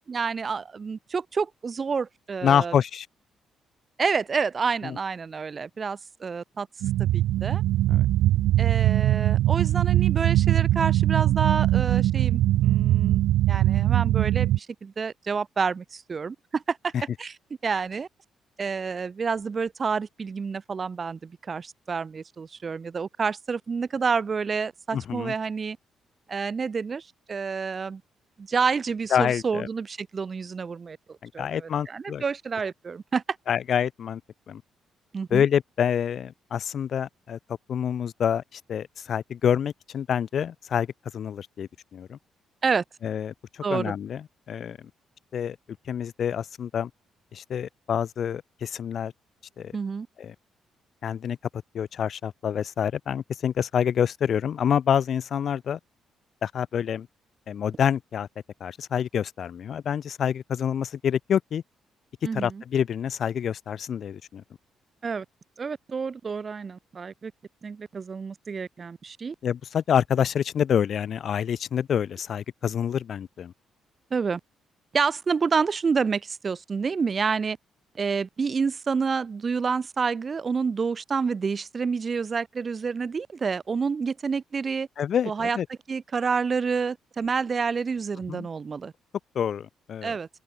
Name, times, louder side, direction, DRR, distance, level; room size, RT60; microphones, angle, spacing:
voice 1, 0.0-2.7 4.0-6.7 7.0-7.6 8.6-16.9 17.2-17.3 17.6-18.1 18.6-25.8 26.3-28.0 28.4-33.2 35.1-35.5 42.6-42.8 43.6-43.9 49.7-50.1 62.2-62.6 65.0-65.3 65.6-67.3 67.6-69.4 74.1-74.4 74.9-77.6 78.0-84.9 85.3-85.6 85.9-88.9 90.0-90.3, right 5 dB, 40° right, 3.7 m, -29 dB
voice 2, 2.4-3.1 4.8-5.0 7.9-8.1 24.9-25.3 29.1-29.7 31.2-32.2 33.5-34.2 34.5-34.6 35.3-37.4 37.7-40.9 41.1-42.2 43.0-44.9 45.3-45.6 45.9-46.9 47.3-49.1 49.6-49.7 50.2-50.3 51.0-51.4 51.7-55.8 56.4-57.1 57.5-58.3 58.6-61.6 62.3-64.4 69.4-73.5 85.0-85.7 88.3-88.5 89.3-90.1, left 8 dB, 60° left, 3.2 m, -27 dB
sound 1, 6.8-14.6, right 14 dB, 85° right, 0.6 m, -21 dB
open air
cardioid pair, 90°, 0 cm